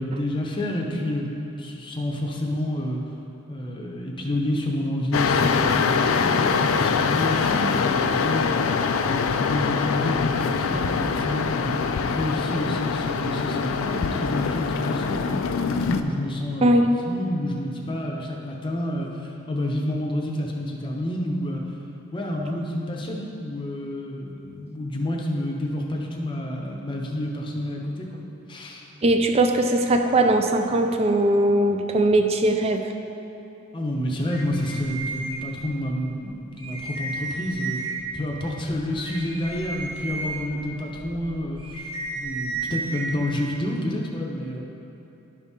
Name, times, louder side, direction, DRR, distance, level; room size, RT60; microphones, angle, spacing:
voice 1, 0.0-3.0 3.5-8.6 9.0-11.7 12.0-15.3 15.7-21.6 22.1-28.1 28.5-28.8 33.7-37.8 38.1-44.6, left 1 dB, 20° left, -1 dB, 0.7 m, -29 dB
sound 1, 5.1-16.0, left 5 dB, 65° left, 0.3 m, -24 dB
voice 2, 16.6-17.0 18.1-18.2 22.3-22.4 29.0-32.9, right 1 dB, 30° right, 5 dB, 0.3 m, -20 dB
sound 2, 34.3-35.8 36.2-36.3 36.6-38.1 38.6-43.0, right 3 dB, 80° right, 1.3 m, -33 dB
11.0 x 4.2 x 3.6 m, 2.9 s
head